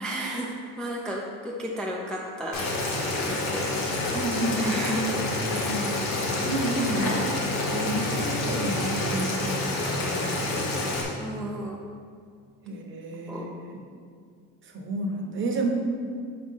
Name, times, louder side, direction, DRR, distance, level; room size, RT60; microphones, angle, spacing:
voice 1, 0.0-2.7 3.2-3.8 4.6-5.7 11.2-11.8 13.3-13.5, right 1 dB, ahead, -2 dB, 0.4 m, -33 dB
Boiling, 2.5-11.0, left 2 dB, 70° left, 1.3 m, -28 dB
voice 2, 4.1-4.8 5.5-5.9 6.4-7.2 7.5-10.4 12.6-13.8 14.6-15.7, right 2 dB, 35° right, 1 dB, 0.9 m, -31 dB
4.8 x 3.8 x 5.4 m, 2.2 s
cardioid pair, 120°, 34 cm